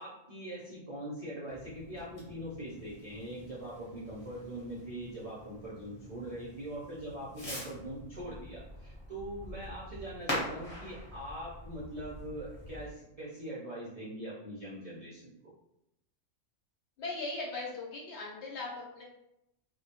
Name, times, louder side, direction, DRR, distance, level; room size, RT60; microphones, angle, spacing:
voice 1, 0.0-15.5, right 1 dB, 50° right, -9 dB, 0.4 m, -42 dB
Fireworks, 1.5-12.9, left 1 dB, 25° left, 0.8 m, -44 dB
voice 2, 17.0-19.0, left 2 dB, 65° left, -3 dB, 0.9 m, -39 dB
2.2 x 2.1 x 2.8 m, 0.85 s
omnidirectional pair, 1.3 m